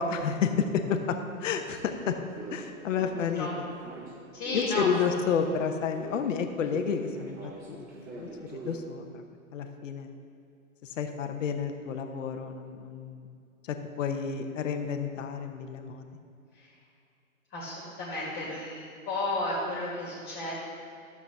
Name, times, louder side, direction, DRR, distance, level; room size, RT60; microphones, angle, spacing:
voice 1, 0.0-2.2 2.5-3.7 4.5-9.2 9.5-10.1 10.8-13.4 13.7-16.0, left 6 dB, 60° left, 6 dB, 0.9 m, -31 dB
sound 1, 1.7-5.1 5.4-8.8, right 2 dB, 20° right, 1.1 m, -44 dB
voice 2, 4.3-5.1 16.5-16.7 17.5-20.6, left 2 dB, 25° left, -6 dB, 2.0 m, -33 dB
12.0 x 7.1 x 3.4 m, 2.4 s
hypercardioid pair, 130°, 43 cm